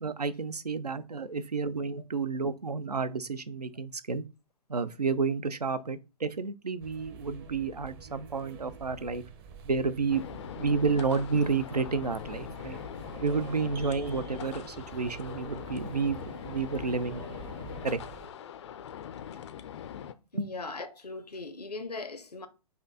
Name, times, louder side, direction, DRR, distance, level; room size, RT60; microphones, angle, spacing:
voice 1, 0.0-4.2 4.7-9.2 9.6-10.2 10.6-12.8 13.2-16.2 16.4-17.3 17.8-18.0 20.3-20.5, right 4 dB, 90° right, 0.5 m, -30 dB
sound 1, 6.8-18.3, right 5 dB, 40° right, 0.7 m, -47 dB
sound 2, 10.1-20.1, left 9 dB, 50° left, 0.4 m, -42 dB
voice 2, 20.3-22.5, left 3 dB, 85° left, 0.7 m, -39 dB
4.3 x 2.7 x 3.7 m
figure-of-eight pair, 115°, 20 cm